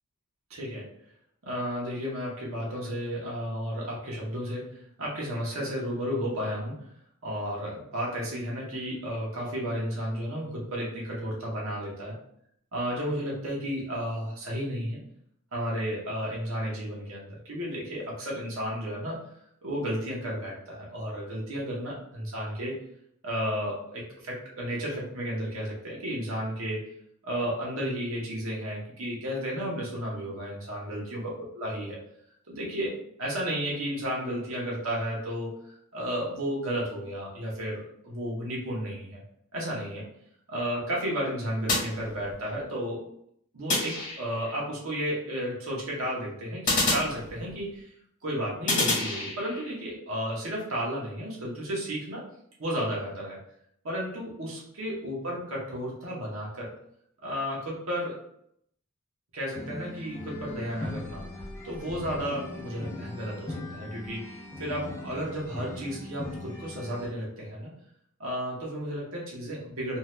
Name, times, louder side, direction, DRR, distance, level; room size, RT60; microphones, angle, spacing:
voice 1, 0.5-0.9 1.4-6.9 7.2-12.1 12.7-15.0 15.5-19.3 19.6-22.8 23.2-26.9 27.2-32.0 32.5-39.2 39.5-40.1 40.5-43.1 43.5-47.9 48.2-52.3 52.6-53.4 53.8-56.7 57.2-58.2 59.3-61.2 61.6-67.7 68.2-70.0, equal, 65° right, -4 dB, 0.9 m, -33 dB
sound 1, 41.7-42.6 43.7-44.6 46.7-47.8 48.7-49.7, left 2 dB, 35° left, 1.2 m, -29 dB
sound 2, 59.5-67.1, left 1 dB, 10° left, 0.4 m, -40 dB
2.7 x 2.3 x 3.1 m, 0.70 s
head